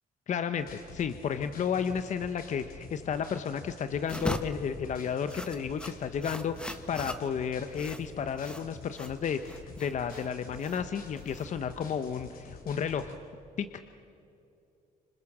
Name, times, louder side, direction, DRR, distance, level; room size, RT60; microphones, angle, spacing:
voice 1, 0.3-13.1 13.6-13.7, left 7 dB, 50° left, 10 dB, 1.0 m, -32 dB
sound 1, 0.6-13.1, left 4 dB, 65° left, 4.6 m, -48 dB
sound 2, 4.0-11.9, equal, 5° left, 1.4 m, -40 dB
27.0 x 26.0 x 7.4 m, 2.7 s
cardioid pair, 95°, 16 cm